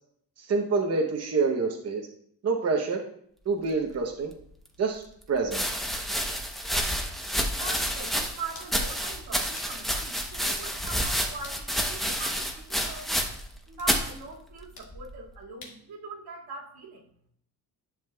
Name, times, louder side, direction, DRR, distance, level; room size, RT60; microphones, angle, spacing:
voice 1, 0.4-2.0 2.4-3.0 3.5-4.3 4.8-5.0 5.3-5.6, right 4 dB, 40° right, 1 dB, 0.9 m, -26 dB
sound 1, 4.4-4.5 5.4-13.5 13.8-14.1 14.9-15.3, equal, ahead, 0.8 m, -29 dB
sound 2, 6.8-7.0 7.5-7.9 8.5-8.7 9.6-9.8 10.0-10.1 10.5-10.7 11.4-11.7 12.8-13.0 13.8-13.9 14.8-14.9 15.6-15.8, left 4 dB, 70° left, 1.9 m, -47 dB
voice 2, 7.5-13.3 13.7-17.0, right 3 dB, 85° right, -2 dB, 2.1 m, -42 dB
11.0 x 7.1 x 2.3 m, 0.67 s
cardioid pair, 140°, 37 cm